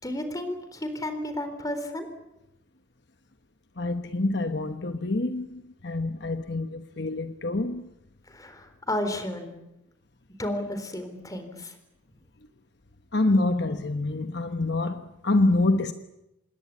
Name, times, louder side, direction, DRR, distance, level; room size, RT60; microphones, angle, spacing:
voice 1, 0.0-2.1 8.3-9.6 10.4-11.8, left 1 dB, 20° left, 3.8 m, -32 dB
voice 2, 3.8-7.9 13.1-15.9, left 2 dB, 60° left, 1.2 m, -26 dB
27.0 x 21.0 x 8.6 m
head